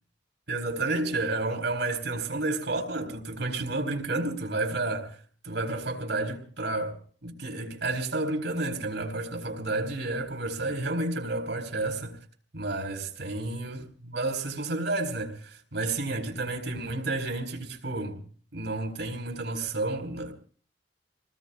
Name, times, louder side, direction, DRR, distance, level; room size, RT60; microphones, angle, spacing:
voice 1, 0.5-5.2 5.4-12.2 12.5-18.2 18.5-20.3, right 2 dB, 75° right, 4.5 m, -31 dB
29.0 x 20.0 x 2.5 m
head